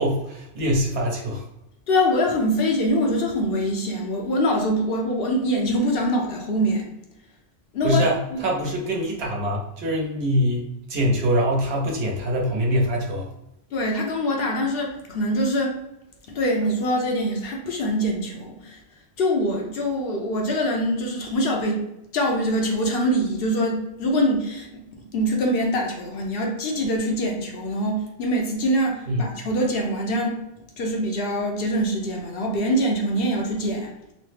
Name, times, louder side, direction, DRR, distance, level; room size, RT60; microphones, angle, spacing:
voice 1, 0.0-1.4 7.8-13.3 29.1-29.2, equal, 80° right, -2 dB, 1.1 m, -24 dB
voice 2, 1.9-6.9 7.7-8.1 8.3-8.4 13.7-15.8 16.3-18.8 19.2-21.9 22.1-30.4 30.8-33.9, equal, 70° left, 1 dB, 0.8 m, -24 dB
3.0 x 2.1 x 3.2 m, 0.86 s
omnidirectional pair, 1.0 m